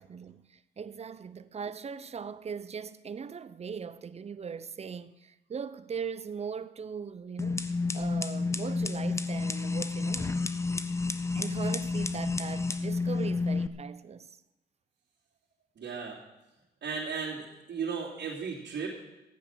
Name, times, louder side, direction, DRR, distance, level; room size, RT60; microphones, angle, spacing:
voice 1, 0.0-10.4 11.3-14.3, right 6 dB, 30° right, 0.7 m, -39 dB
sound 1, 7.4-13.7, left 3 dB, 15° left, 0.9 m, -30 dB
voice 2, 15.7-16.2 16.8-18.9, right 5 dB, 60° right, 3.2 m, -35 dB
14.0 x 9.3 x 7.4 m
cardioid pair, 90°, 20 cm